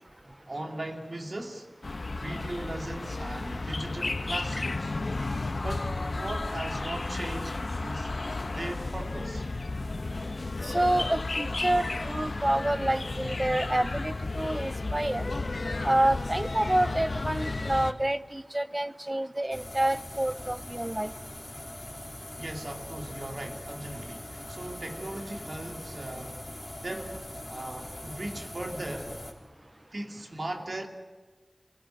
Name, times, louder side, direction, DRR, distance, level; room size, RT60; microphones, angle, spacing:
voice 1, 0.5-1.7 2.2-5.0 5.6-8.1 8.5-9.4 10.2-10.3 22.4-26.4 26.8-27.2 27.5-29.1 29.9-30.9, right 1 dB, 65° right, 2 dB, 2.5 m, -38 dB
sound 1, 1.8-17.9, left 3 dB, 75° left, 1.1 m, -33 dB
voice 2, 10.6-15.3 15.8-21.1, right 1 dB, 25° right, 15 dB, 0.7 m, -28 dB
sound 2, 19.5-29.3, left 1 dB, 30° left, 3.7 m, -42 dB
25.5 x 17.5 x 9.2 m, 1.3 s
wide cardioid pair, 55°, 0 cm